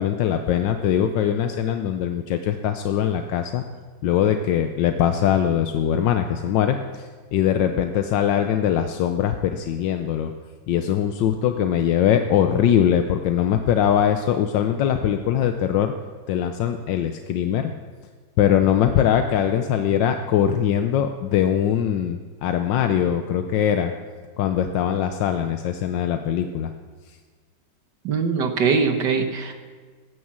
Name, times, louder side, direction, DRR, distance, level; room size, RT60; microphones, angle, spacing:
voice 1, 0.0-3.6 4.0-10.3 10.7-15.9 16.3-17.7 18.4-23.9 24.4-26.7, left 9 dB, 85° left, 6 dB, 1.4 m, -22 dB
voice 2, 28.1-29.5, right 5 dB, 70° right, 6 dB, 1.7 m, -22 dB
16.0 x 9.6 x 7.4 m, 1.5 s
omnidirectional pair, 1.9 m